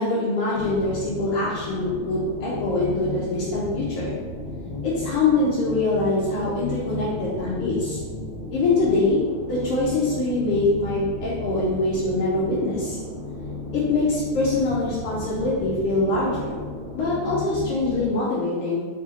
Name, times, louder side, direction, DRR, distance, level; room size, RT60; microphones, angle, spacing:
voice 1, 0.0-4.1 4.8-8.0 8.5-13.0 13.7-16.6 16.9-18.8, left 2 dB, 80° left, -8 dB, 1.3 m, -24 dB
sound 1, 0.5-18.1, left 2 dB, 50° left, 1.5 m, -34 dB
4.8 x 2.7 x 3.7 m, 1.5 s
omnidirectional pair, 3.6 m